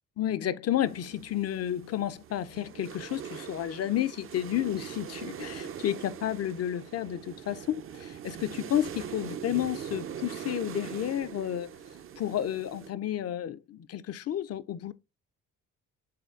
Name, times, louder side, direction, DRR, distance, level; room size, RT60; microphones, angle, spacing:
voice 1, 0.2-11.7 12.2-14.9, left 11 dB, 45° left, 0.4 m, -31 dB
sound 1, 0.9-12.9, right 8 dB, 35° right, 0.5 m, -42 dB
5.8 x 3.7 x 2.4 m
hypercardioid pair, 55°, 36 cm